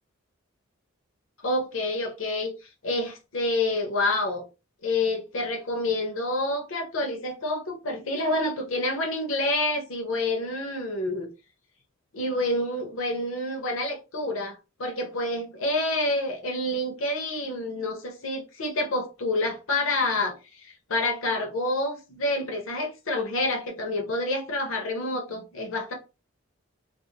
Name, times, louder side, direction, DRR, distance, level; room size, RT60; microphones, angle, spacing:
voice 1, 1.4-2.5 2.8-4.5 4.8-11.3 12.1-25.9, left 2 dB, 70° left, 0.7 m, -28 dB
2.5 x 2.1 x 2.7 m
head